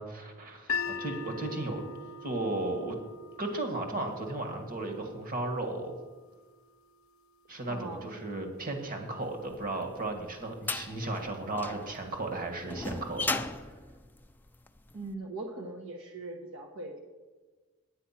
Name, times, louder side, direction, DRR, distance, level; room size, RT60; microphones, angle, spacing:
voice 1, 0.0-1.9 2.2-3.0 3.4-5.9 7.5-13.7, right 2 dB, 40° right, 4 dB, 1.7 m, -35 dB
sound 1, 0.7-6.9, left 5 dB, 70° left, 0.7 m, -41 dB
voice 2, 7.7-8.1 14.9-17.0, right 2 dB, 65° right, 1 dB, 1.1 m, -40 dB
sound 2, 9.6-14.9, left 3 dB, 10° left, 0.4 m, -37 dB
9.3 x 9.1 x 5.8 m, 1.3 s
head